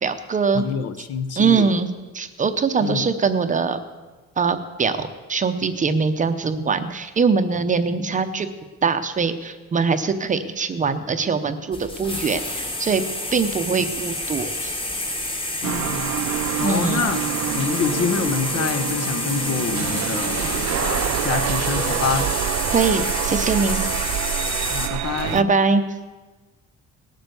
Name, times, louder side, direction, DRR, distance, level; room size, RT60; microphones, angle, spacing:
voice 1, 0.0-0.6 1.4-1.9 2.1-3.8 4.4-8.5 8.8-13.0 13.3-14.7 16.6-17.0 22.7-23.9 25.3-25.8, right 5 dB, 25° right, 9 dB, 0.7 m, -22 dB
voice 2, 0.5-1.7 2.8-3.1 15.6-16.1 16.6-17.3 17.5-22.3 24.7-25.5, left 7 dB, 55° left, 11 dB, 1.0 m, -27 dB
sound 1, 11.7-24.9, left 1 dB, 15° left, 1.5 m, -28 dB
sound 2, 15.6-25.4, right 13 dB, 65° right, 0.6 m, -27 dB
18.5 x 8.0 x 6.9 m, 1.3 s
cardioid pair, 170°, 29 cm